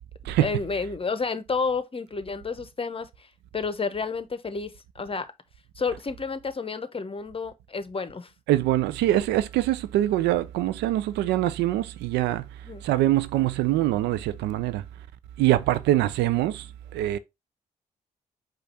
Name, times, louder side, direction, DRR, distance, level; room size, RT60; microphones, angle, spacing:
voice 1, 0.4-3.3 3.5-5.3 5.8-8.3 12.6-12.8, left 4 dB, 30° left, 0.8 m, -30 dB
voice 2, 8.5-12.4 12.8-14.8 15.4-16.7 16.9-17.2, right 14 dB, 75° right, 0.4 m, -23 dB
5.0 x 2.5 x 4.1 m
hypercardioid pair, 40°, 18 cm